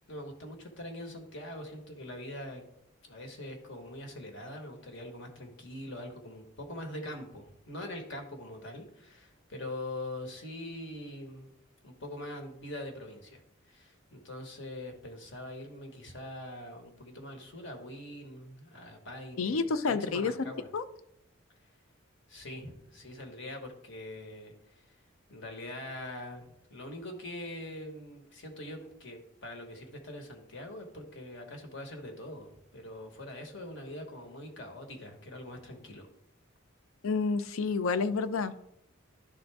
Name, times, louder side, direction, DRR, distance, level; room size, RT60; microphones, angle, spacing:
voice 1, 0.1-2.6 3.0-11.5 11.8-13.4 13.7-20.7 22.3-25.0 25.3-36.1, left 1 dB, 60° left, 4 dB, 1.4 m, -43 dB
voice 2, 19.4-20.3 20.7-20.8 37.0-38.6, left 4 dB, 80° left, 13 dB, 0.5 m, -29 dB
11.5 x 3.9 x 3.4 m, 0.76 s
head